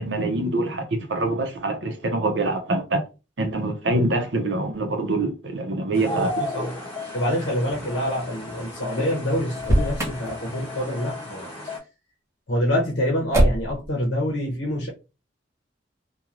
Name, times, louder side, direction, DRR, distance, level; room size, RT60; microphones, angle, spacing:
voice 1, 0.0-3.0 3.4-6.3, right 2 dB, 75° right, 0.6 m, -25 dB
sound 1, 5.9-11.8, left 1 dB, 35° left, 1.2 m, -34 dB
voice 2, 6.1-6.7 7.1-11.5 12.5-14.9, equal, 75° left, 0.8 m, -26 dB
Motor vehicle (road), 9.5-10.3 13.3-13.9, right 1 dB, 15° right, 0.7 m, -21 dB
3.0 x 2.2 x 2.5 m
head